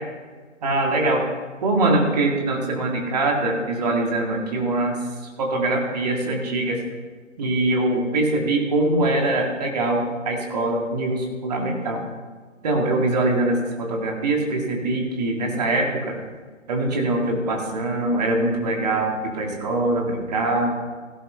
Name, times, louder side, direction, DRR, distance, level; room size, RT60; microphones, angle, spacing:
voice 1, 0.6-1.2 1.6-5.0 5.4-6.8 7.4-12.0 12.6-16.2 16.7-20.8, right 2 dB, 30° right, 1 dB, 2.3 m, -23 dB
16.0 x 11.0 x 3.4 m, 1.5 s
figure-of-eight pair, 150°, 38 cm